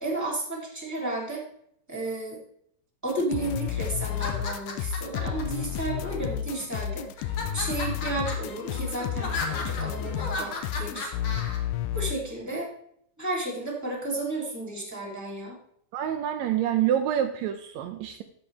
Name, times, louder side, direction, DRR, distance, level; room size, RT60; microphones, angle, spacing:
voice 1, 0.0-1.4 1.9-2.4 3.0-11.1 11.9-12.7 13.2-15.6, right 2 dB, 5° right, -2 dB, 2.2 m, -33 dB
sound 1, 3.1-12.2, left 10 dB, 80° left, 2.1 m, -31 dB
sound 2, 4.1-5.4 6.2-6.7 7.2-11.6, left 3 dB, 50° left, 1.7 m, -35 dB
voice 2, 15.9-18.2, right 10 dB, 85° right, 6 dB, 1.6 m, -27 dB
14.0 x 6.2 x 3.3 m, 0.70 s
omnidirectional pair, 3.9 m